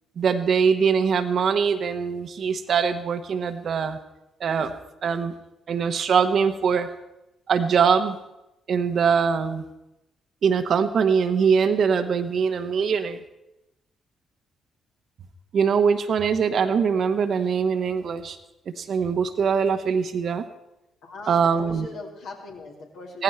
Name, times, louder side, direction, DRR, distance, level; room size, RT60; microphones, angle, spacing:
voice 1, 0.2-4.0 4.4-4.7 5.0-5.3 5.7-6.9 7.5-8.2 8.7-9.6 10.4-13.2 15.5-18.4 18.8-20.4 21.3-21.9 23.1-23.2, right 6 dB, 55° right, 9 dB, 1.1 m, -22 dB
voice 2, 21.0-23.2, left 3 dB, 65° left, -2 dB, 3.2 m, -40 dB
16.5 x 15.0 x 4.5 m, 0.93 s
figure-of-eight pair, 40°, 0 cm